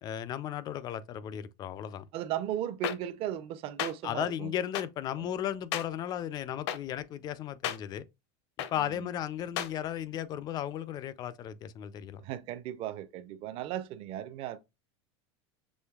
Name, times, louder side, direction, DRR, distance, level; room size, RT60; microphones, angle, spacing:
voice 1, 0.0-2.1 4.0-8.1 8.7-12.2, left 10 dB, 25° left, 0.3 m, -35 dB
voice 2, 2.1-4.5 5.2-5.3 8.8-9.2 12.2-14.6, right 11 dB, 40° right, 0.5 m, -36 dB
sound 1, 2.8-2.9 3.8-3.9 4.7-4.8 5.7-5.8 6.7-6.8 7.6-7.8 8.6-8.7 9.6-9.7, left 10 dB, 70° left, 0.7 m, -32 dB
6.2 x 3.0 x 2.3 m
supercardioid pair, 150°, 15 cm